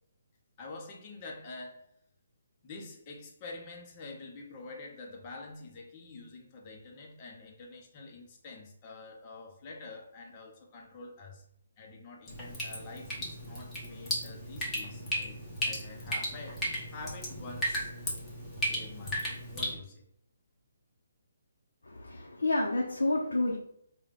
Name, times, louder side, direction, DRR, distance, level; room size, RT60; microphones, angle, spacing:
voice 1, 0.6-1.8 2.6-11.4 11.8-15.4 15.6-17.9 18.7-20.0, left 3 dB, 30° left, -1 dB, 0.7 m, -47 dB
Drip, 12.3-19.7, equal, 10° left, 1.0 m, -35 dB
voice 2, 21.8-23.6, left 2 dB, 85° left, -2 dB, 0.7 m, -29 dB
3.5 x 2.2 x 3.6 m, 0.69 s
hypercardioid pair, 150°, 0 cm